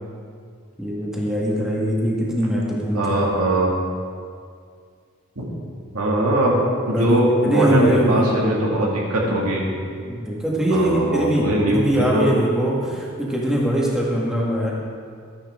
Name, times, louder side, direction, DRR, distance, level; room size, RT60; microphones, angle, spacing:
voice 1, 0.8-3.1 6.4-6.6 6.9-7.2 7.4-8.3 10.1-14.7, equal, 5° right, -5 dB, 1.7 m, -22 dB
voice 2, 2.9-3.7 5.4-5.5 5.9-6.6 6.9-9.6 10.7-11.8 12.1-12.3, right 1 dB, 85° right, -3 dB, 2.3 m, -20 dB
13.0 x 9.9 x 3.8 m, 2.2 s
head